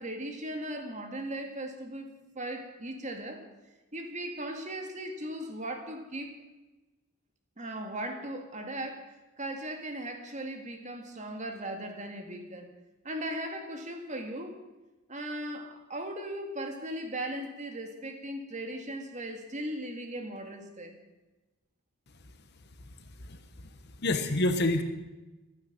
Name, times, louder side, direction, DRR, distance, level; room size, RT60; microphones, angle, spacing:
voice 1, 0.0-2.1 2.4-3.4 3.9-6.3 7.6-9.1 9.4-12.7 13.0-14.5 15.1-21.0, right 1 dB, 35° right, 5 dB, 2.0 m, -38 dB
voice 2, 23.2-23.7 24.0-24.8, left 2 dB, 50° left, 8 dB, 1.2 m, -28 dB
15.0 x 12.5 x 6.1 m, 1.1 s
head